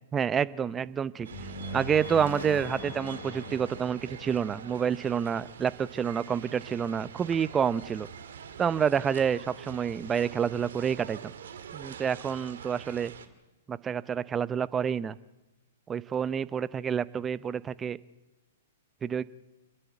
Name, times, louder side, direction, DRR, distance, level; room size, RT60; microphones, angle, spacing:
voice 1, 0.1-1.3 1.7-8.1 8.6-11.3 11.7-13.1 13.7-15.2 15.9-18.0 19.0-19.2, right 7 dB, 20° right, 17 dB, 0.6 m, -28 dB
sound 1, 1.2-13.3, right 7 dB, 75° right, 1.9 m, -45 dB
sound 2, 1.3-5.4, left 2 dB, 65° left, 5.4 m, -41 dB
29.0 x 10.0 x 9.4 m, 1.1 s
hypercardioid pair, 120°, 0 cm